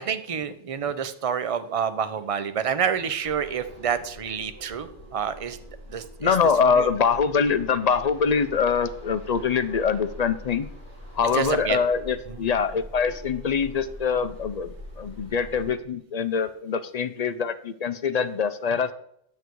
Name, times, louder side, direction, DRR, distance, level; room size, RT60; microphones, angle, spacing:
voice 1, 0.0-5.6 5.9-6.3 6.8-6.9 11.3-11.8, right 7 dB, 35° right, 12 dB, 0.6 m, -28 dB
sound 1, 3.2-15.7, equal, 85° right, 5.4 m, -43 dB
voice 2, 6.2-10.7 11.1-18.9, left 6 dB, 45° left, 11 dB, 0.6 m, -24 dB
9.2 x 8.1 x 4.7 m, 0.70 s
omnidirectional pair, 1.2 m